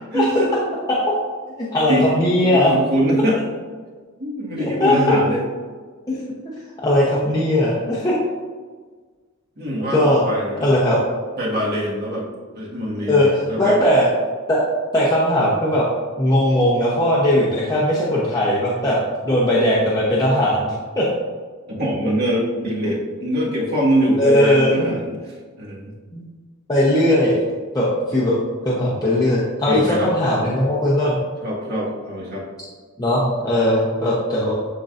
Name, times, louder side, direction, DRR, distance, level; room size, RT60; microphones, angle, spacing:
voice 1, 0.1-0.5 1.9-2.1 2.5-3.4 4.2-5.4 9.6-10.6 11.4-12.3 12.5-13.8 21.7-25.2 25.6-25.9 29.7-30.1 31.4-32.4, equal, 45° right, -5 dB, 1.8 m, -23 dB
voice 2, 1.7-2.7 4.6-4.9 6.1-6.2 6.8-8.1 9.9-10.2 10.6-11.0 13.1-14.1 14.5-14.7 14.9-15.9 16.2-20.7 21.0-21.1 24.2-24.9 26.1-26.2 26.7-27.4 27.7-28.4 28.6-31.2 33.0-34.5, left 1 dB, 15° left, -7 dB, 0.9 m, -18 dB
11.0 x 3.9 x 2.6 m, 1.5 s
head